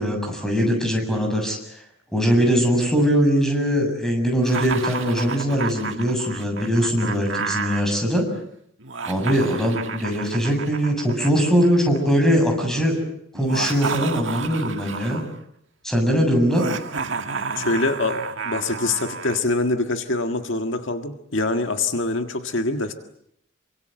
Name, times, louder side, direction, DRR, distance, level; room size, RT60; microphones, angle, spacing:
voice 1, 0.0-1.8 2.1-8.2 9.1-12.9 13.3-15.2 15.8-16.6, equal, ahead, 2 dB, 7.4 m, -21 dB
Laughter, 4.4-7.8 8.8-12.1 13.3-15.4 16.5-19.4, right 5 dB, 65° right, 1.9 m, -31 dB
voice 2, 17.6-22.9, left 2 dB, 65° left, 6 dB, 1.7 m, -24 dB
28.0 x 25.0 x 7.9 m, 0.72 s
head